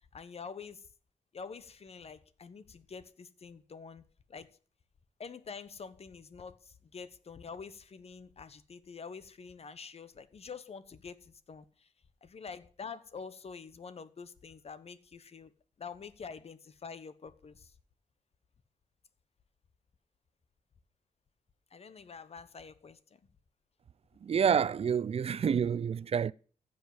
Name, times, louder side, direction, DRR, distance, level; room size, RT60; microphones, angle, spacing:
voice 1, 0.1-0.8 1.3-4.0 4.3-4.5 5.2-11.6 12.2-15.5 15.8-17.7 21.7-23.0, left 5 dB, 50° left, 1.2 m, -46 dB
voice 2, 24.2-26.3, right 7 dB, 45° right, 0.4 m, -28 dB
15.0 x 5.4 x 7.1 m
cardioid pair, 90°, 14 cm